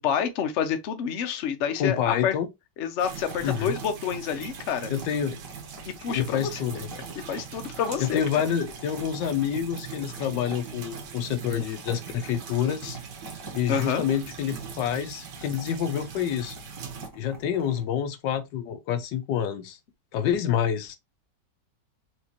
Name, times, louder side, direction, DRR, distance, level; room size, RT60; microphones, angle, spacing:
voice 1, 0.0-2.3 2.8-4.9 5.8-6.6 7.3-8.2 13.7-14.0, left 7 dB, 55° left, 0.8 m, -28 dB
voice 2, 1.8-2.5 3.4-3.8 4.9-5.4 6.1-6.9 8.0-13.0 13.5-16.6 17.1-19.8 20.1-21.0, left 9 dB, 85° left, 1.3 m, -27 dB
sound 1, 3.0-17.1, right 6 dB, 85° right, 1.6 m, -41 dB
sound 2, 3.3-17.9, right 2 dB, 10° right, 1.3 m, -47 dB
4.6 x 2.9 x 2.9 m
omnidirectional pair, 1.9 m